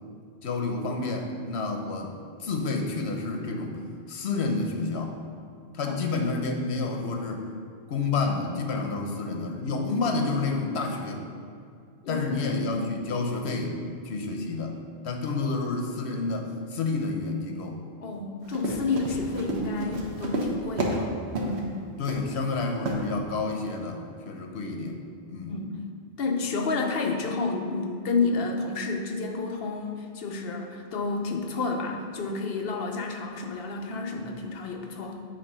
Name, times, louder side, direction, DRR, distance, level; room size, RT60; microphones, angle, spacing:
voice 1, 0.4-2.1 2.4-3.8 4.1-5.2 5.7-7.5 7.9-11.2 12.1-13.8 14.0-14.8 15.0-17.8 22.0-25.0 25.3-25.6, left 3 dB, 90° left, 3 dB, 1.0 m, -29 dB
voice 2, 12.0-12.8 18.0-21.1 21.4-21.7 25.5-25.8 26.2-35.2, left 3 dB, 65° left, 1 dB, 0.9 m, -30 dB
Run, 18.4-21.0 21.3-21.6 22.1-22.4 22.8-23.0, right 1 dB, 90° right, 1.2 m, -30 dB
8.6 x 2.9 x 5.4 m, 2.2 s
omnidirectional pair, 1.1 m